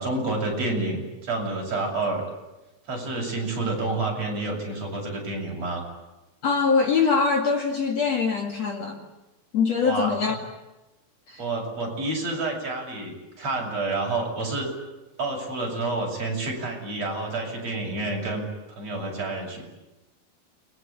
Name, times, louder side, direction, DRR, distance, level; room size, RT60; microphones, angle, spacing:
voice 1, 0.0-2.2 2.9-5.8 9.8-10.1 11.4-14.7 15.2-19.6, right 2 dB, 45° right, 0 dB, 8.5 m, -29 dB
voice 2, 6.4-9.0 9.5-10.4 11.3-11.4, left 5 dB, 50° left, 4 dB, 3.0 m, -23 dB
29.0 x 23.0 x 8.8 m, 1.0 s
omnidirectional pair, 4.3 m